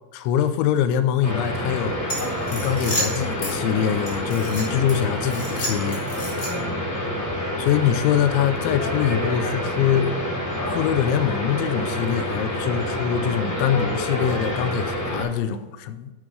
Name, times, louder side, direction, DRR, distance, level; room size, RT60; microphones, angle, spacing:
voice 1, 0.1-2.0 2.5-6.0 7.6-10.1 10.7-16.1, left 9 dB, 85° left, 3.1 m, -23 dB
sound 1, 1.2-15.2, left 1 dB, 35° left, 4.5 m, -27 dB
sound 2, 2.0-3.5 4.1-4.9 5.3-6.7, equal, 20° left, 3.7 m, -30 dB
12.5 x 8.8 x 3.4 m
omnidirectional pair, 5.2 m